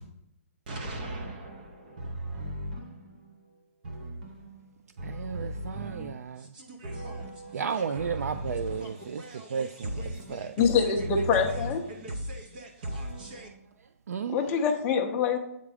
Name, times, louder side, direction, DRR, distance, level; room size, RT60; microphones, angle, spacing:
voice 1, 0.7-1.3 6.8-7.3 10.0-10.1 12.0-12.1 12.8-13.5, right 1 dB, 35° right, 0.7 m, -36 dB
voice 2, 5.0-6.4 7.5-9.2 9.5-9.9 10.3-10.5 14.1-14.4, right 6 dB, 80° right, 0.4 m, -33 dB
voice 3, 10.6-11.8 14.3-15.4, left 6 dB, 15° left, 0.6 m, -25 dB
8.4 x 3.7 x 4.9 m
hypercardioid pair, 170°, 8 cm